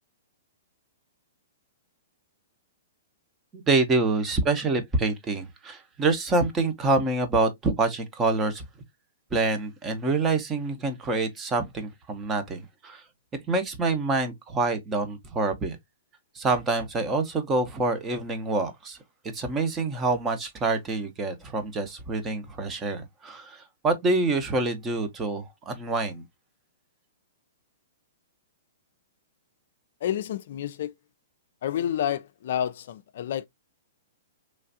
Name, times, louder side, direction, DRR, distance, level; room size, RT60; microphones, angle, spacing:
voice 1, 3.5-8.6 9.3-13.0 13.3-15.8 16.3-19.0 19.3-26.2, right 3 dB, 20° right, 0.7 m, -26 dB
voice 2, 30.0-30.9 31.6-33.5, left 10 dB, 60° left, 0.3 m, -29 dB
3.1 x 2.4 x 2.6 m
hypercardioid pair, 135°, 0 cm